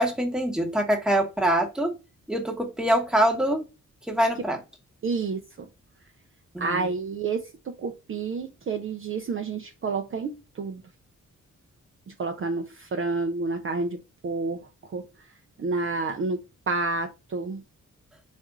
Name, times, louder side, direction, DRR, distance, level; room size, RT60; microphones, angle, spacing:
voice 1, 0.0-1.9 2.3-3.6 4.1-4.6 6.5-6.9, right 1 dB, ahead, 1.1 m, -24 dB
voice 2, 5.0-5.4 6.6-10.8 12.2-14.0 14.2-14.6 14.9-15.0 15.6-16.4 16.7-17.6, right 3 dB, 40° right, 0.5 m, -29 dB
4.2 x 2.4 x 4.5 m
wide cardioid pair, 140°, 31 cm